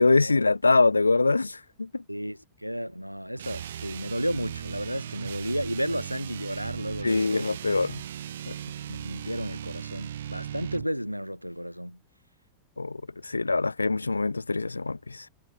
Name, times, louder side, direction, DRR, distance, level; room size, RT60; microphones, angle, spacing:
voice 1, 0.0-2.0 7.0-8.0 8.5-8.6 12.8-15.3, left 3 dB, 80° left, 0.8 m, -24 dB
voice 2, 2.1-7.5 8.9-12.0, equal, 90° right, 3.1 m, -33 dB
sound 1, 3.4-10.9, right 10 dB, 60° right, 1.0 m, -38 dB
figure-of-eight pair, 90°, 0 cm